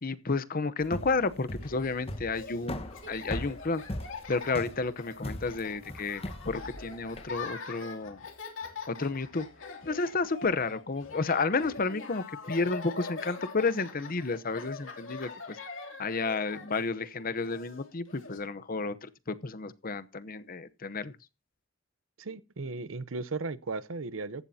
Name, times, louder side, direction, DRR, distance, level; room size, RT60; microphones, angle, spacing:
voice 1, 0.0-3.8 4.3-8.2 8.9-9.5 9.8-15.6 16.0-21.1, left 3 dB, 45° left, 0.9 m, -31 dB
sound 1, 0.8-7.3, left 1 dB, 30° left, 1.3 m, -39 dB
Laughter, 1.6-18.4, left 4 dB, 70° left, 3.0 m, -44 dB
voice 2, 22.2-24.4, right 3 dB, 85° right, 0.8 m, -36 dB
15.0 x 11.5 x 2.8 m
head